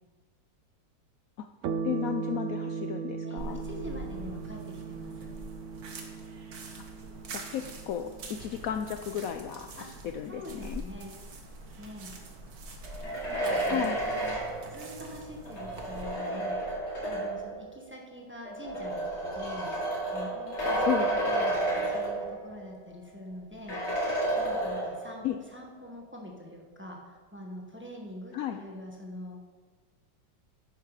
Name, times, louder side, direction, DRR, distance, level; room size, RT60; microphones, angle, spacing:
sound 1, 1.6-10.5, right 5 dB, 75° right, 0.7 m, -38 dB
voice 1, 1.8-3.6 7.3-10.8 13.7-14.0 20.9-21.1 25.2-25.4 28.3-28.6, left 10 dB, 80° left, 7 dB, 0.7 m, -34 dB
voice 2, 3.2-5.3 9.8-11.1 11.8-12.1 13.0-14.4 14.7-16.7 17.0-19.7 20.1-23.8 24.4-25.2 25.5-27.0 27.3-29.4, left 1 dB, 5° right, 0 dB, 1.1 m, -45 dB
sound 2, 3.4-16.0, right 2 dB, 55° right, 1.6 m, -45 dB
sound 3, 12.8-17.5 18.5-22.6 22.9-23.0 23.7-25.2, right 1 dB, 35° left, 2.3 m, -31 dB
10.5 x 9.3 x 4.9 m, 1.4 s
omnidirectional pair, 2.0 m